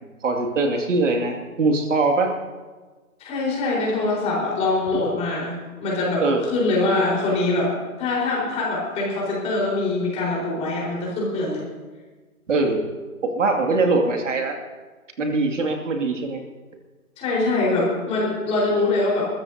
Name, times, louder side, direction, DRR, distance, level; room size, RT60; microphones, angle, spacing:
voice 1, 0.2-2.3 6.2-6.4 12.5-12.8 13.2-14.6 15.2-16.4, right 3 dB, 55° right, 3 dB, 2.5 m, -22 dB
voice 2, 3.2-5.5 5.8-7.7 8.0-11.6 17.2-19.3, left 2 dB, 15° left, -4 dB, 4.5 m, -23 dB
29.5 x 14.0 x 2.8 m, 1.3 s
figure-of-eight pair, 150°, 45 cm